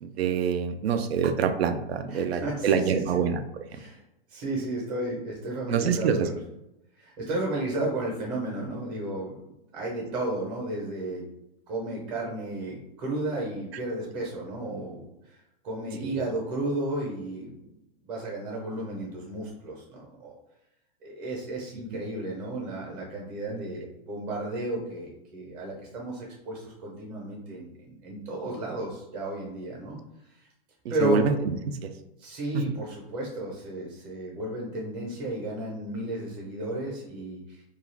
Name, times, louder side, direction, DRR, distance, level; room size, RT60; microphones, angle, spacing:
voice 1, 0.0-3.4 5.7-6.3 16.0-16.2 23.5-23.6 31.0-31.5 31.8-31.9 32.5-32.6, right 6 dB, 90° right, 8 dB, 0.5 m, -25 dB
voice 2, 2.1-3.1 3.7-4.0 4.3-6.4 7.0-9.3 9.7-11.2 11.7-15.4 15.6-17.6 18.0-20.3 21.0-30.0 30.4-30.5 30.9-31.2 32.2-37.6, right 1 dB, 30° right, -3 dB, 0.7 m, -33 dB
2.4 x 2.3 x 3.2 m, 0.88 s
hypercardioid pair, 145°, 30 cm